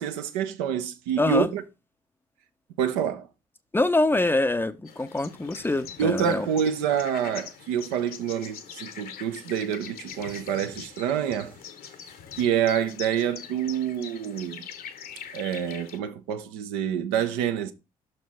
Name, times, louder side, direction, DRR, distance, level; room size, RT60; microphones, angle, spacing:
voice 1, 0.0-1.6 2.8-3.3 6.0-11.5 12.3-14.6 15.3-17.7, right 9 dB, 70° right, 0.6 m, -27 dB
voice 2, 1.2-1.5 3.7-6.5, left 2 dB, 10° left, 0.5 m, -24 dB
sound 1, 4.9-16.0, left 8 dB, 55° left, 0.8 m, -43 dB
6.1 x 4.4 x 4.2 m
figure-of-eight pair, 45°, 18 cm